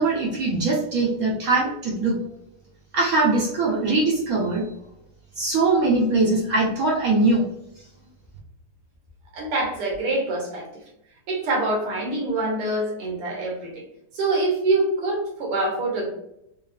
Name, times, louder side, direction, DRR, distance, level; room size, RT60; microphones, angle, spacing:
voice 1, 0.0-2.2 2.9-4.6 5.4-7.4, right 3 dB, 60° right, -3 dB, 0.9 m, -21 dB
voice 2, 9.3-10.7 11.3-13.8 14.1-16.1, right 2 dB, 85° right, -2 dB, 2.1 m, -25 dB
5.3 x 2.5 x 2.4 m, 0.82 s
omnidirectional pair, 2.4 m